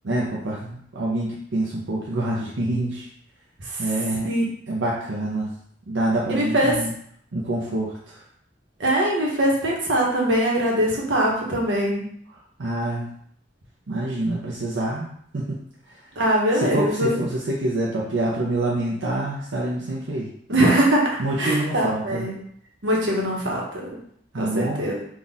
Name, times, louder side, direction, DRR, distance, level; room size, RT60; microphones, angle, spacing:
voice 1, 0.0-3.1 3.8-4.3 4.7-5.5 5.9-6.9 7.3-8.2 12.6-13.1 13.9-16.0 16.5-20.3 21.2-22.3 24.3-24.9, right 1 dB, 90° right, -4 dB, 0.7 m, -26 dB
voice 2, 6.3-6.7 8.8-12.0 16.2-17.1 20.5-21.0 21.4-22.3 22.8-23.9 24.4-25.0, right 1 dB, 70° right, -2 dB, 1.1 m, -22 dB
3.6 x 2.4 x 4.0 m, 0.65 s
head